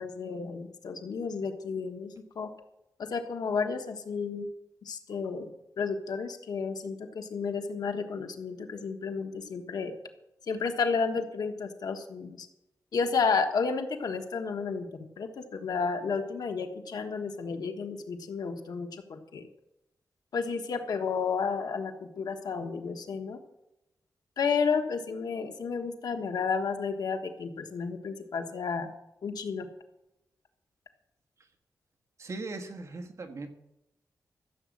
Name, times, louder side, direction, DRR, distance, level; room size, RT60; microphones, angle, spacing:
voice 1, 0.0-2.5 3.0-4.5 4.8-5.5 5.8-9.9 10.5-12.5 12.9-19.5 20.3-23.4 24.4-28.9 29.2-29.7, left 5 dB, 85° left, 6 dB, 1.4 m, -32 dB
voice 2, 32.2-33.5, right 3 dB, 50° right, 5 dB, 1.4 m, -39 dB
14.5 x 7.5 x 7.4 m, 0.88 s
wide cardioid pair, 155°, 7 cm